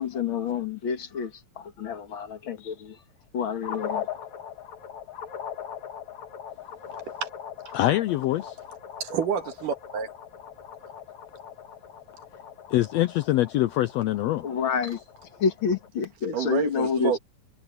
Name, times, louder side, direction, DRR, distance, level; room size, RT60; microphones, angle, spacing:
voice 1, 0.0-3.0 3.3-4.1 14.4-15.0 15.4-17.2, left 6 dB, 45° left, 2.0 m, -28 dB
sound 1, 3.6-15.9, left 8 dB, 65° left, 3.1 m, -40 dB
voice 2, 7.7-8.6 12.7-14.5, left 15 dB, 80° left, 1.5 m, -24 dB
voice 3, 9.0-10.1 16.3-17.2, right 7 dB, 90° right, 3.4 m, -28 dB
omnidirectional pair, 3.6 m